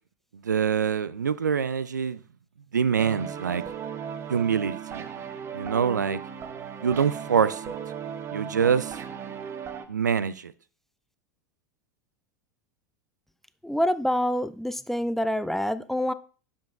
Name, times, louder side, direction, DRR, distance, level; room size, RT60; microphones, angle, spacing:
voice 1, 0.4-2.2 2.7-3.6 4.3-5.1 5.5-6.2 6.8-7.7 8.3-9.0 9.9-10.5, right 7 dB, 80° right, 0.4 m, -25 dB
sound 1, 3.0-9.9, right 8 dB, 25° right, 0.8 m, -36 dB
voice 2, 13.6-16.1, equal, 5° left, 0.3 m, -26 dB
10.5 x 7.1 x 2.3 m
figure-of-eight pair, 85°, 9 cm